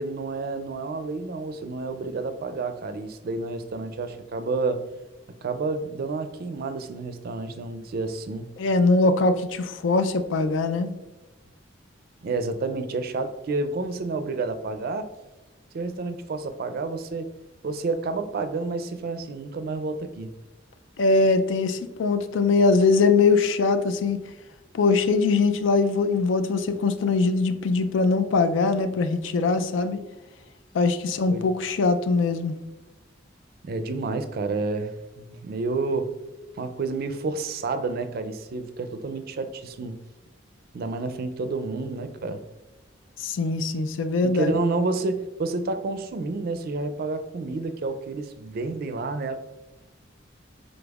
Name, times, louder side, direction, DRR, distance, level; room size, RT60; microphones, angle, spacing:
voice 1, 0.0-4.8 5.4-8.5 12.2-15.1 15.7-17.3 17.6-20.3 31.3-31.4 33.6-36.1 36.5-40.0 40.7-42.4 44.2-49.4, right 3 dB, 55° right, 9 dB, 0.4 m, -30 dB
voice 2, 8.6-10.9 21.0-24.2 24.7-30.0 30.7-32.5 43.2-44.6, left 3 dB, 80° left, 10 dB, 0.4 m, -22 dB
5.1 x 3.8 x 2.3 m, 1.1 s
head